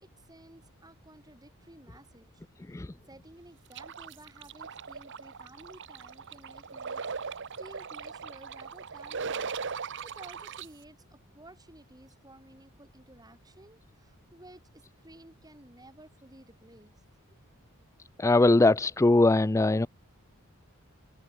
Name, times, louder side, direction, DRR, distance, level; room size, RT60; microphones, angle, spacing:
voice 1, 0.0-2.4 3.1-7.3 7.6-17.4, right 1 dB, 15° right, 7.5 m, -54 dB
sound 1, 3.7-10.7, right 5 dB, 55° right, 1.1 m, -39 dB
voice 2, 18.2-19.9, left 2 dB, 15° left, 0.4 m, -21 dB
head